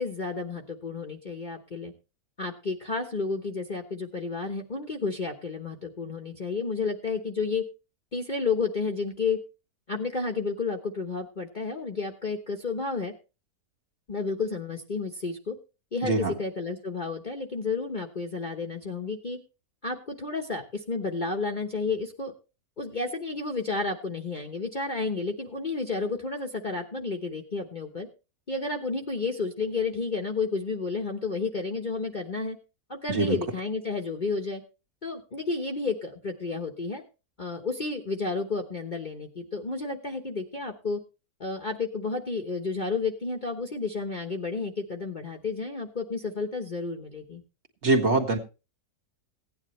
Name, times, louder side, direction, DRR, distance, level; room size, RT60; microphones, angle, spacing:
voice 1, 0.0-1.9 2.4-7.6 8.1-9.4 9.9-13.1 14.1-15.6 15.9-19.4 19.8-22.3 22.8-28.1 28.5-32.6 32.9-34.6 35.0-37.0 37.4-41.0 41.4-47.4, left 4 dB, 35° left, 2 dB, 1.1 m, -31 dB
voice 2, 16.0-16.3 33.1-33.4 47.8-48.4, right 3 dB, 45° right, 2 dB, 2.0 m, -23 dB
16.5 x 9.8 x 3.1 m, 0.30 s
omnidirectional pair, 1.7 m